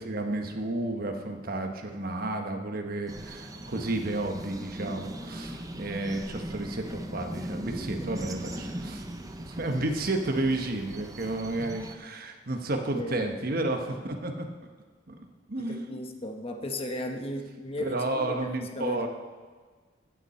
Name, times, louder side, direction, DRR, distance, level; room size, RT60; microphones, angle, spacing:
voice 1, 0.0-9.0 9.4-14.5 15.1-15.2 15.5-16.0 17.8-19.1, right 2 dB, 50° right, 4 dB, 1.1 m, -32 dB
sound 1, 3.1-11.9, right 1 dB, 20° right, 0.7 m, -39 dB
voice 2, 15.6-19.1, left 1 dB, 30° left, 4 dB, 1.0 m, -36 dB
15.0 x 8.4 x 4.3 m, 1.5 s
head